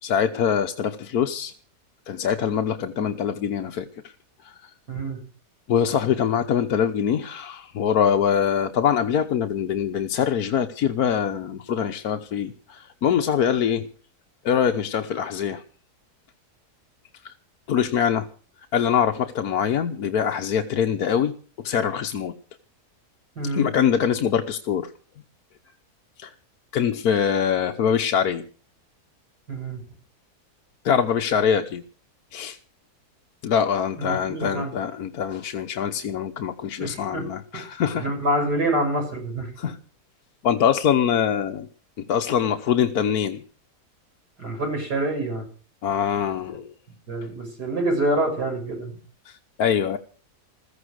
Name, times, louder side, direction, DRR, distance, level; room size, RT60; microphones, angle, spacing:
voice 1, 0.0-1.5 2.1-4.1 4.4-4.5 5.7-13.9 14.4-15.6 17.2-17.3 17.7-18.3 18.7-21.3 21.6-22.3 23.5-24.9 26.2-26.3 26.7-28.4 30.8-31.8 32.3-32.6 33.4-38.1 39.6-39.8 40.4-41.7 42.0-43.4 45.8-46.7 49.3-50.0, left 8 dB, 70° left, 6 dB, 1.4 m, -23 dB
voice 2, 4.9-5.2 23.4-23.7 29.5-29.8 34.0-34.7 36.8-37.2 37.9-39.5 44.4-45.4 47.1-49.0, right 1 dB, 80° right, 3 dB, 7.4 m, -26 dB
15.5 x 14.5 x 6.4 m, 0.40 s
omnidirectional pair, 1.7 m